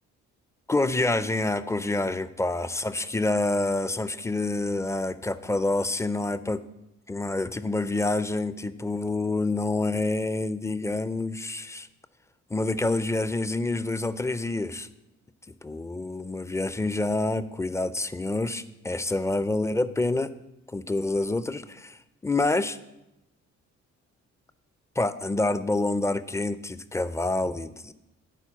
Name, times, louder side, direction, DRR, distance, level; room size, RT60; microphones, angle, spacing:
voice 1, 0.7-6.6 7.1-11.9 12.5-14.9 15.6-20.3 20.7-22.0 22.2-22.8 25.0-27.9, left 2 dB, 10° left, 14 dB, 0.4 m, -27 dB
9.1 x 4.3 x 7.0 m, 0.91 s
cardioid pair, 90°, 30 cm